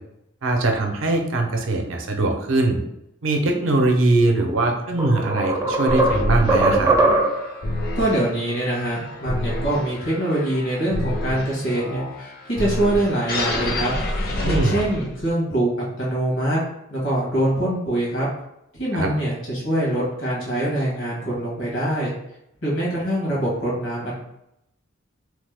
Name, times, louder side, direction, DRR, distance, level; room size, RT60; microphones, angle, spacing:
voice 1, 0.4-2.8 3.2-7.0 14.4-14.8 18.9-19.1, right 2 dB, 80° right, 2 dB, 0.5 m, -21 dB
sound 1, 4.4-4.5 5.0-7.6, right 2 dB, 15° right, 0.4 m, -20 dB
sound 2, 5.9-15.3, left 1 dB, 50° left, 0.6 m, -28 dB
voice 2, 8.0-14.0 14.4-16.6 16.9-18.3 18.7-22.1 22.6-24.2, right 1 dB, 75° left, -5 dB, 1.5 m, -24 dB
3.1 x 2.0 x 3.3 m, 0.82 s
head